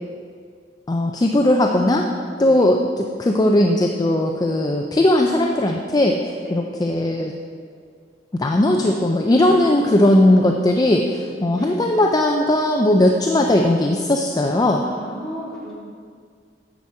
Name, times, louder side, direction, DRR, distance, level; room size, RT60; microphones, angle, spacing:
voice 1, 0.9-2.1 2.4-6.2 6.5-7.3 8.4-14.8, left 1 dB, 20° left, 2 dB, 0.4 m, -18 dB
voice 2, 2.4-2.7 6.4-6.6 9.6-10.3 11.6-11.7 14.8-15.7, equal, ahead, -9 dB, 2.6 m, -33 dB
9.8 x 7.3 x 4.3 m, 2.1 s
head